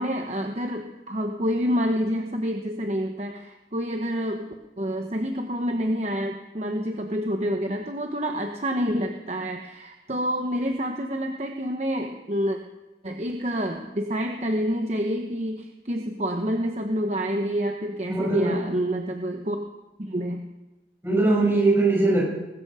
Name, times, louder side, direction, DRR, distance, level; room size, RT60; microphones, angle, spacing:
voice 1, 0.0-12.6 13.0-19.6 20.0-20.5, equal, 40° right, 3 dB, 1.0 m, -28 dB
voice 2, 18.1-18.7 21.0-22.2, right 2 dB, 15° right, -3 dB, 6.4 m, -21 dB
20.5 x 13.5 x 5.0 m, 1.0 s
head